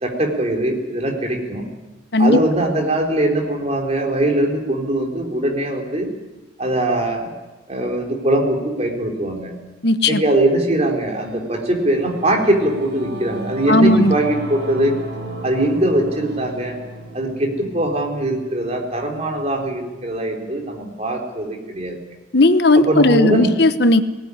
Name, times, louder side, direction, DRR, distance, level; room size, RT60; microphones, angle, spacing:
voice 1, 0.0-1.6 2.2-6.1 6.6-7.3 7.7-9.5 10.0-14.9 15.4-16.8 17.1-22.0 22.8-23.5, right 1 dB, 35° right, 1 dB, 3.9 m, -21 dB
voice 2, 9.8-10.2 13.7-14.1 22.3-24.0, left 2 dB, 60° left, 11 dB, 1.1 m, -15 dB
Singing / Musical instrument, 11.2-20.9, right 1 dB, 60° right, 7.1 m, -35 dB
18.5 x 18.5 x 9.8 m, 1.1 s
head